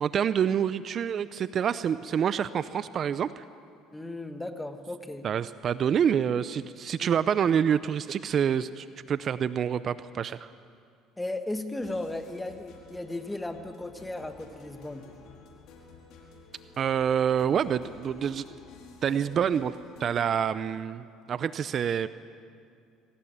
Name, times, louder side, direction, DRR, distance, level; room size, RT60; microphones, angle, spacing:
voice 1, 0.0-3.4 5.2-10.5 16.8-18.4 19.0-22.1, right 8 dB, 45° right, 14 dB, 0.7 m, -27 dB
voice 2, 3.9-5.3 7.0-7.1 11.2-15.1, left 2 dB, 10° left, 7 dB, 1.8 m, -36 dB
sound 1, 11.7-20.4, left 4 dB, 65° left, 4.8 m, -51 dB
23.5 x 18.0 x 8.8 m, 2.3 s
supercardioid pair, 95°, 0 cm